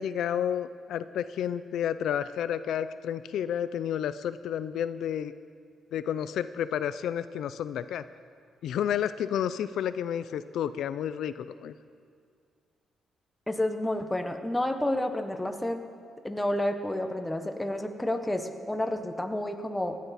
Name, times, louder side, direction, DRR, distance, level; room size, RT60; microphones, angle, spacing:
voice 1, 0.0-5.3 5.9-8.0 8.6-11.7, left 9 dB, 70° left, 13 dB, 0.4 m, -31 dB
voice 2, 13.5-15.8 16.2-20.0, left 1 dB, 5° left, 6 dB, 0.8 m, -30 dB
25.5 x 10.0 x 4.1 m, 2.2 s
cardioid pair, 180°, 0 cm